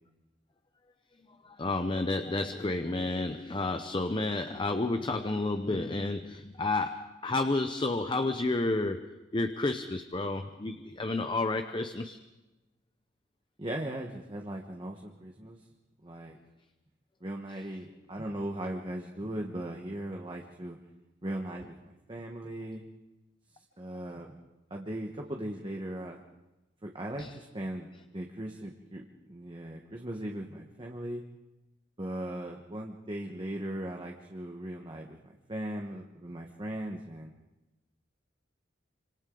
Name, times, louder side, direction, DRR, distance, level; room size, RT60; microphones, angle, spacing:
voice 1, 1.4-12.2 27.2-27.3, left 2 dB, 25° left, 8 dB, 0.7 m, -31 dB
voice 2, 13.6-15.6 16.0-16.4 17.2-20.8 21.2-22.8 23.5-24.4 24.7-26.2 26.8-31.2 32.0-37.3, right 1 dB, 25° right, 1 dB, 1.3 m, -38 dB
26.5 x 25.5 x 3.9 m, 1.0 s
head